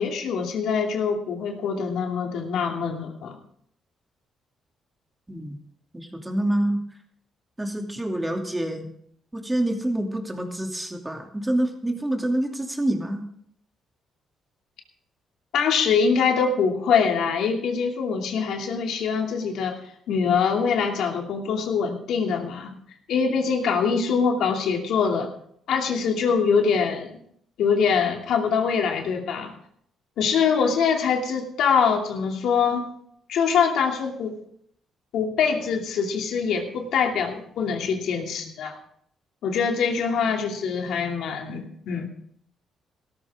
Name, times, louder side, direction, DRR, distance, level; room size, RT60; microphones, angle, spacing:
voice 1, 0.0-3.4 15.5-19.8 20.1-22.7 23.1-25.3 25.7-27.2 27.6-29.5 30.2-32.9 33.3-34.4 35.1-38.8 39.4-42.1, left 6 dB, 80° left, 2 dB, 2.7 m, -24 dB
voice 2, 5.9-6.8 7.6-8.9 9.3-13.3, right 1 dB, 10° right, 2 dB, 2.7 m, -27 dB
17.5 x 13.5 x 3.7 m, 0.68 s
cardioid pair, 90°, 0 cm